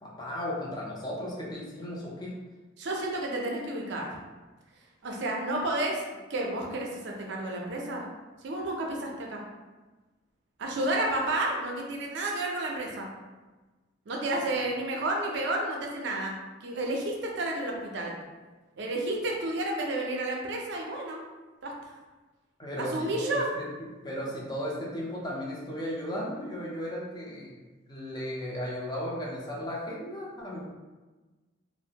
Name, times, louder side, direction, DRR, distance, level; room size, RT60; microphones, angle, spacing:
voice 1, 0.0-2.3 22.6-23.7 24.0-27.5 27.9-30.6, equal, 20° left, -4 dB, 0.5 m, -35 dB
voice 2, 2.8-4.1 5.0-6.0 6.3-8.0 8.4-9.4 10.6-13.1 14.1-16.3 16.6-18.1 18.8-21.2 21.6-21.7 22.8-23.4, right 1 dB, 60° right, 0 dB, 0.4 m, -31 dB
2.6 x 2.0 x 2.7 m, 1.2 s
head